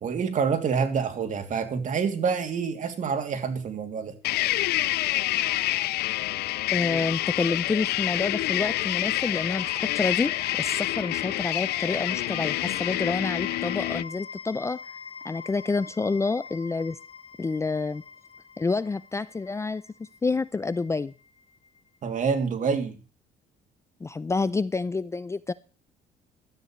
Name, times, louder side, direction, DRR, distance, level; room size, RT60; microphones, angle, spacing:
voice 1, 0.0-4.1 22.0-23.0, right 6 dB, 50° right, 7 dB, 2.8 m, -27 dB
sound 1, 4.2-14.0, left 17 dB, 75° left, 0.5 m, -27 dB
voice 2, 6.7-10.3 10.6-14.8 15.2-17.0 17.4-18.0 18.6-19.8 20.2-21.1 24.0-25.5, left 3 dB, 15° left, 17 dB, 0.5 m, -28 dB
sound 2, 7.9-21.8, left 5 dB, 30° left, 2.3 m, -43 dB
16.5 x 13.0 x 3.2 m, 0.36 s
cardioid pair, 110°, 17 cm